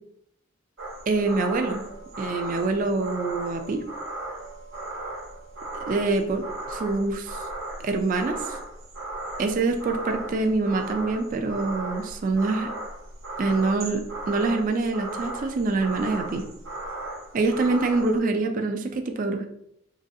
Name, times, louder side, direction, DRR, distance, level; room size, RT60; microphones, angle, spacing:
sound 1, 0.8-18.2, right 2 dB, 70° right, 1.1 m, -36 dB
voice 1, 1.1-1.8 2.2-3.8 5.7-7.4 7.8-8.6 9.4-12.7 13.4-16.4 17.3-19.5, right 3 dB, 40° right, 6 dB, 0.3 m, -25 dB
3.8 x 3.1 x 2.6 m, 0.75 s
head